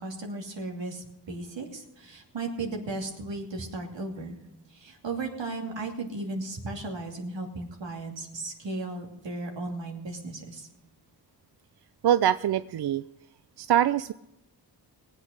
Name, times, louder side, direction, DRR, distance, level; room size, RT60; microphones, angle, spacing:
voice 1, 0.0-4.3 4.7-10.7, right 2 dB, 80° right, 2 dB, 2.8 m, -35 dB
voice 2, 12.0-13.0 13.6-14.1, right 10 dB, 65° right, 14 dB, 0.5 m, -23 dB
19.0 x 8.3 x 6.3 m, 0.91 s
cardioid pair, 65°, 43 cm